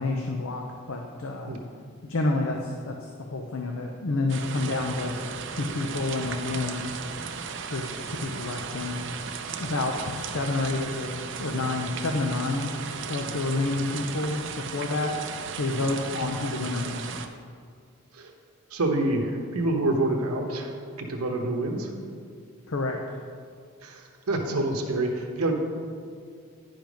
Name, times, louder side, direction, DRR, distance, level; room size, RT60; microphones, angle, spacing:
voice 1, 0.0-1.5 2.1-5.1 5.5-6.8 7.7-8.9 9.6-12.7 13.1-14.4 14.7-15.1 15.6-17.1 22.7-23.0, left 2 dB, 65° left, 2 dB, 0.6 m, -29 dB
sound 1, 4.3-17.3, right 6 dB, 55° right, 0.5 m, -36 dB
voice 2, 18.7-21.9 23.8-25.5, right 2 dB, 85° right, 2 dB, 1.0 m, -27 dB
10.5 x 5.2 x 5.2 m, 2.1 s
head